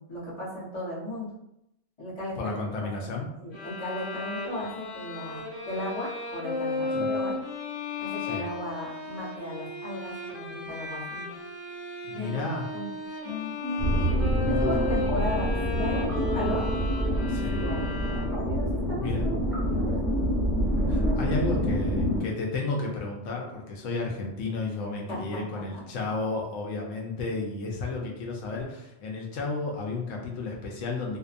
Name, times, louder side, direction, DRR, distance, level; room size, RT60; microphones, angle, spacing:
voice 1, 0.0-1.3 2.0-3.1 3.4-7.4 8.0-11.3 12.1-12.4 12.7-12.9 13.2-13.9 14.4-16.6 17.5-17.9 18.5-20.1 20.8-21.2 25.1-25.8, left 1 dB, 35° left, -8 dB, 1.0 m, -36 dB
voice 2, 2.4-3.3 6.9-7.1 8.3-8.5 12.0-12.6 14.4-14.7 17.3-17.7 19.0-19.2 20.9-31.2, left 3 dB, 85° left, -1 dB, 0.9 m, -32 dB
sound 1, 3.5-18.6, left 3 dB, 60° left, 0.6 m, -35 dB
sound 2, 13.8-22.2, equal, ahead, 1.1 m, -26 dB
2.6 x 2.2 x 2.4 m, 0.83 s
omnidirectional pair, 1.3 m